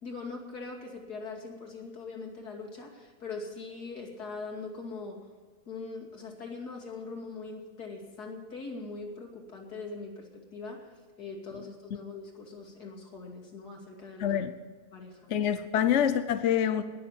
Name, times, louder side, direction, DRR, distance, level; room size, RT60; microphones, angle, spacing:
voice 1, 0.0-5.2 5.7-14.4 14.9-15.3, left 4 dB, 80° left, 0 dB, 3.0 m, -41 dB
voice 2, 14.2-14.5 15.3-16.8, left 9 dB, 55° left, 10 dB, 0.9 m, -26 dB
19.5 x 7.1 x 7.2 m, 1.5 s
omnidirectional pair, 1.7 m